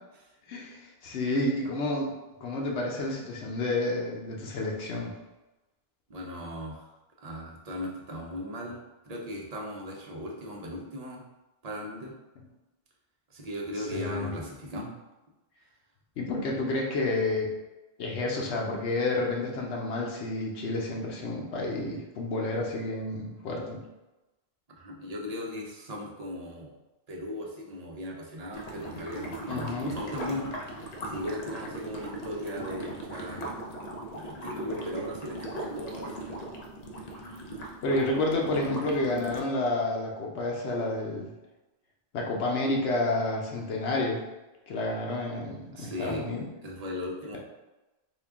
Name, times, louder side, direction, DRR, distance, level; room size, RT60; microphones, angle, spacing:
voice 1, 0.5-2.1 2.4-5.1 13.8-14.3 16.2-17.5 18.0-23.8 29.5-30.0 37.8-41.3 42.1-44.2 44.7-46.4, left 2 dB, 90° left, -1 dB, 0.9 m, -30 dB
voice 2, 6.1-6.9 7.2-8.8 9.0-11.2 11.6-12.1 13.3-14.9 24.8-26.7 27.1-30.5 30.7-33.5 34.1-36.4 45.7-46.2 46.6-47.4, left 1 dB, 40° right, -2 dB, 0.7 m, -38 dB
sound 1, 28.5-39.4, right 1 dB, 50° left, 0.6 m, -38 dB
3.6 x 2.3 x 3.5 m, 1.0 s
omnidirectional pair, 1.1 m